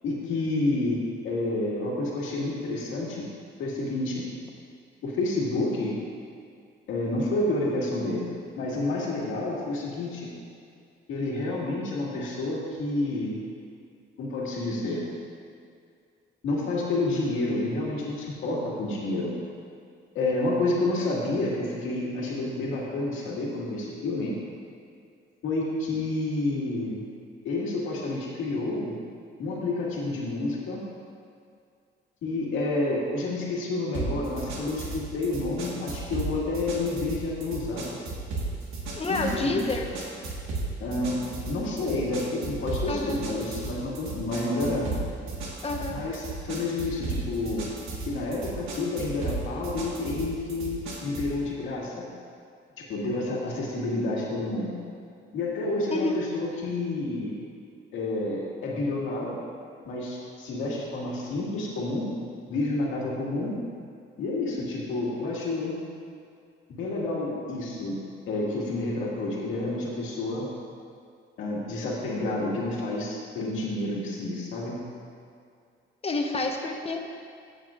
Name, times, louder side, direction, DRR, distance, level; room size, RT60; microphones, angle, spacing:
voice 1, 0.0-3.3 3.6-4.2 5.0-6.0 6.9-8.3 8.6-10.3 11.1-13.4 14.2-15.0 16.4-19.3 20.1-24.3 25.4-27.0 27.4-28.9 29.4-30.8 32.2-37.9 39.1-39.6 40.8-45.0 45.9-47.7 48.1-52.1 52.8-54.8 55.3-57.4 57.9-59.4 59.8-62.1 62.5-63.6 64.2-65.7 66.7-68.0 68.3-70.5 71.4-74.8, left 2 dB, 85° left, -4 dB, 1.9 m, -29 dB
sound 1, 33.9-51.4, right 3 dB, 85° right, 1.5 m, -35 dB
voice 2, 39.0-39.9 42.9-43.2 45.6-46.0 55.9-56.2 76.0-77.0, left 3 dB, 30° left, 2 dB, 1.0 m, -28 dB
15.0 x 6.5 x 2.5 m, 2.3 s
cardioid pair, 90°, 20 cm